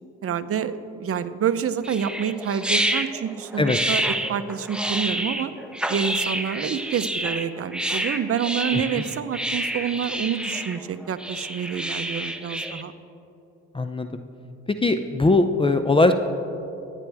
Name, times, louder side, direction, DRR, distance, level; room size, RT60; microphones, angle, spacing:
voice 1, 0.2-5.5 5.9-12.9, right 8 dB, 50° right, 10 dB, 0.8 m, -28 dB
sound 1, 1.8-12.8, right 1 dB, 5° right, 0.9 m, -28 dB
voice 2, 13.7-14.2 14.8-16.1, left 2 dB, 20° left, 8 dB, 0.6 m, -20 dB
23.5 x 9.2 x 3.5 m, 2.8 s
cardioid pair, 90°, 30 cm